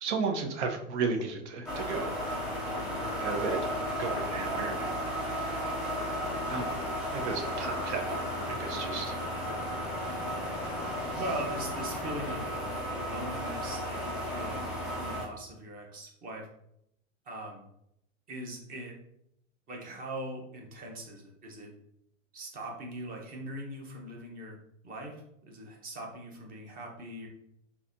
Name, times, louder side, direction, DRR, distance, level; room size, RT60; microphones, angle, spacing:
voice 1, 0.0-2.1 3.2-3.6 4.0-4.9 6.5-6.8 7.1-9.1 10.8-11.0, right 5 dB, 60° right, 4 dB, 0.8 m, -34 dB
sound 1, 1.2-1.3 2.5-2.9 4.2-4.9 6.0-6.8 8.1-8.6 9.5-9.7, left 7 dB, 75° left, 0.6 m, -46 dB
sound 2, 1.7-15.3, equal, ahead, 0.3 m, -34 dB
voice 2, 11.1-14.7 15.0-16.5 17.3-17.7 18.3-18.9 19.7-21.7 22.3-24.6 24.8-27.3, right 1 dB, 20° right, 0 dB, 0.8 m, -41 dB
3.9 x 2.8 x 2.6 m, 0.76 s
hypercardioid pair, 135°, 40 cm